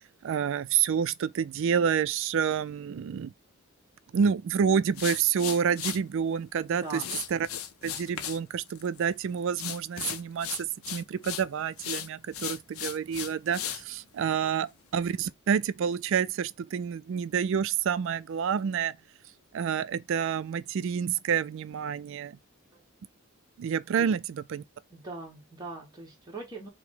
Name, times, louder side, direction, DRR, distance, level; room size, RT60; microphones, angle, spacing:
voice 1, 0.2-3.3 4.1-7.0 7.3-7.5 7.8-18.9 19.5-22.4 23.6-24.6, right 7 dB, 60° right, 0.3 m, -28 dB
sound 1, 4.9-6.0 6.9-8.4 8.7-9.1 9.5-11.5 11.8-13.8, left 9 dB, 75° left, 0.5 m, -36 dB
voice 2, 6.7-7.1 14.4-14.5 24.0-24.1 24.9-26.7, right 3 dB, 20° right, 1.1 m, -41 dB
4.7 x 2.1 x 3.5 m
head